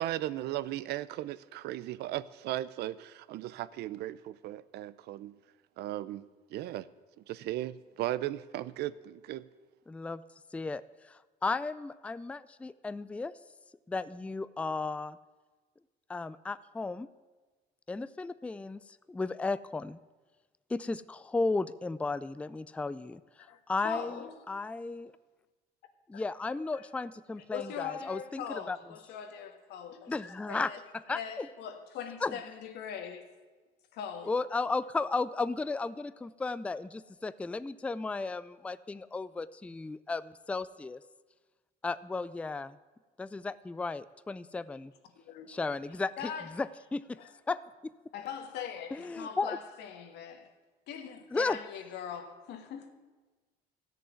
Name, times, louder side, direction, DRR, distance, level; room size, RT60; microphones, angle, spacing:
voice 1, 0.0-5.4 5.8-6.2 6.5-6.9 7.3-9.5, right 14 dB, 75° right, 0.5 m, -36 dB
voice 2, 9.9-10.2 10.5-10.8 11.1-13.3 13.9-15.2 16.1-17.1 17.9-18.8 19.1-20.0 20.7-23.2 23.7-24.1 24.5-25.1 26.1-28.8 30.1-30.7 31.1-31.5 32.2-32.3 34.3-41.0 41.8-42.8 43.2-44.9 45.5-46.1 46.6-47.2 47.5-47.9 48.9-49.6 51.3-51.6, left 3 dB, 5° left, 0.3 m, -34 dB
voice 3, 23.5-24.4 26.1-26.2 26.7-26.9 27.5-30.8 31.1-33.3 33.9-34.3 45.1-45.7 46.2-46.6 47.2-47.3 48.1-50.5 50.9-52.9, left 8 dB, 80° left, 1.6 m, -41 dB
13.5 x 6.8 x 9.5 m
cardioid pair, 110°, 17 cm